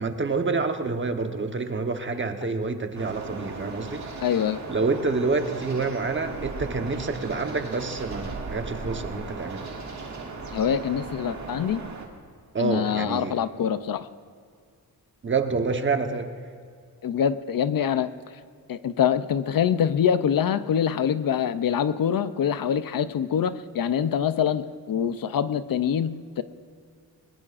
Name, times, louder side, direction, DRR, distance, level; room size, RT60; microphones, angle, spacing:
voice 1, 0.0-4.0 4.7-9.7 12.5-13.4 15.2-16.3, right 4 dB, 30° right, 6 dB, 1.0 m, -27 dB
sound 1, 2.9-12.1, right 3 dB, 45° right, 2.1 m, -37 dB
voice 2, 4.2-4.6 10.5-11.8 12.6-14.1 17.0-18.1 18.7-26.4, left 8 dB, 60° left, 12 dB, 0.6 m, -25 dB
20.0 x 20.0 x 2.5 m, 2.2 s
wide cardioid pair, 125°, 39 cm